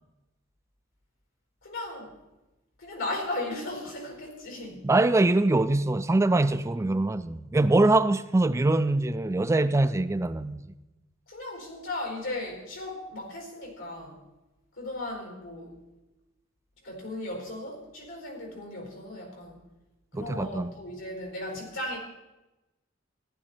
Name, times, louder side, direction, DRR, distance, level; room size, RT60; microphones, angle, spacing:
voice 1, 1.6-2.1 2.8-4.8 11.3-14.2 14.7-15.8 16.8-19.6 20.1-22.0, left 2 dB, 80° left, 4.5 m, -36 dB
voice 2, 4.8-10.6 20.1-20.7, right 2 dB, 15° right, 0.3 m, -23 dB
15.0 x 11.5 x 4.2 m
head